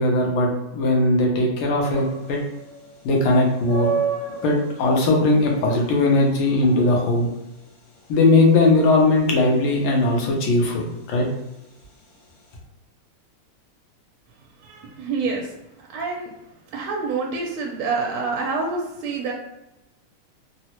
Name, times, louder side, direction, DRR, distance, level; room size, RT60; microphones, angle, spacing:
voice 1, 0.0-2.4 3.0-3.9 4.4-7.3 8.1-11.3, left 2 dB, 85° left, -1 dB, 1.6 m, -19 dB
sound 1, 1.8-12.6, right 5 dB, 70° left, 1.4 m, -34 dB
voice 2, 14.6-15.5 15.8-16.3 16.7-19.3, right 4 dB, 80° right, 0 dB, 1.4 m, -27 dB
3.9 x 2.0 x 2.8 m, 0.91 s
omnidirectional pair, 2.3 m